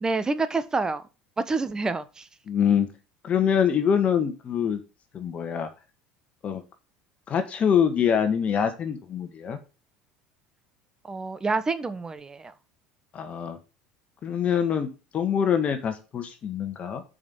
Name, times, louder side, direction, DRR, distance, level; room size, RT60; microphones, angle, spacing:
voice 1, 0.0-1.0 1.4-2.3 11.0-12.5, right 3 dB, 20° right, 1.1 m, -28 dB
voice 2, 2.5-2.9 3.2-4.8 5.1-5.7 6.4-6.6 7.3-9.6 13.1-13.6 14.2-17.0, left 8 dB, 40° left, 1.6 m, -24 dB
7.2 x 5.5 x 6.2 m
supercardioid pair, 90°, 3 cm